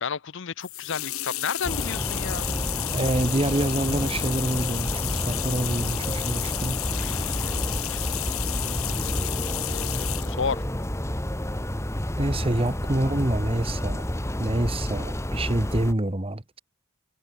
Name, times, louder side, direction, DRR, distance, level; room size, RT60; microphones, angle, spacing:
voice 1, 0.0-2.5 6.9-8.1 9.2-10.6, left 6 dB, 55° left, 0.6 m, -33 dB
sound 1, 0.6-10.4, left 15 dB, 75° left, 1.6 m, -32 dB
sound 2, 1.6-15.9, left 1 dB, 15° left, 1.8 m, -30 dB
voice 2, 2.9-6.8 12.2-14.0 14.4-16.6, right 1 dB, 25° right, 1.3 m, -27 dB
head